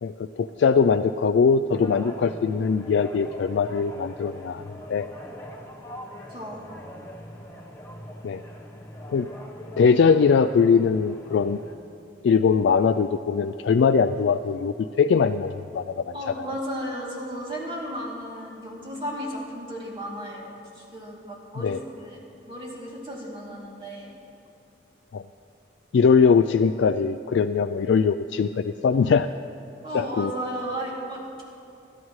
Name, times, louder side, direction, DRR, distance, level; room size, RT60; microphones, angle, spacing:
voice 1, 0.0-4.6 4.9-5.1 8.2-8.4 9.1-9.3 9.8-11.6 12.2-16.5 21.6-21.8 25.1-25.2 25.9-29.3 29.9-30.3, left 5 dB, 75° left, 8 dB, 0.3 m, -21 dB
sound 1, 1.7-11.7, equal, 15° left, 1.0 m, -42 dB
voice 2, 6.3-6.6 16.1-22.2 22.5-24.2 29.8-31.4, equal, 25° right, -5 dB, 2.8 m, -34 dB
24.0 x 12.5 x 3.2 m, 2.6 s
head